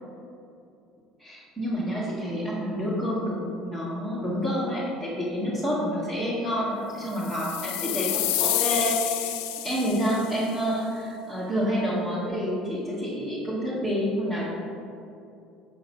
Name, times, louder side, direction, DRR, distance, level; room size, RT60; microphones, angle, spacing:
voice 1, 1.2-9.3 9.6-14.4, equal, 15° right, -10 dB, 1.5 m, -28 dB
sound 1, 7.1-10.3, left 14 dB, 85° left, 0.4 m, -29 dB
5.8 x 3.8 x 5.3 m, 2.6 s
supercardioid pair, 115°, 0 cm